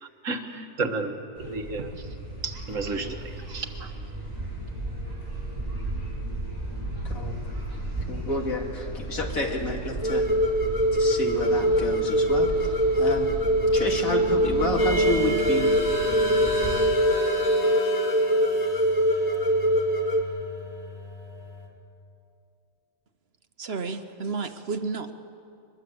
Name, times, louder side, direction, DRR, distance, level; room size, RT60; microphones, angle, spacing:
voice 1, 0.0-2.2 2.4-3.9, right 3 dB, 70° right, 5 dB, 1.9 m, -32 dB
sound 1, 1.3-16.7, right 1 dB, 15° right, 6.5 m, -35 dB
voice 2, 8.1-10.3 11.0-12.5 13.0-13.3 13.7-15.7, left 1 dB, 85° left, 1 dB, 2.9 m, -29 dB
sound 2, 10.0-20.2, equal, 30° left, 1.8 m, -23 dB
sound 3, 14.8-21.7, left 3 dB, 50° left, 2.8 m, -33 dB
voice 3, 23.6-25.1, right 4 dB, 50° right, 9 dB, 1.1 m, -31 dB
23.0 x 21.0 x 7.9 m, 2.6 s
omnidirectional pair, 1.4 m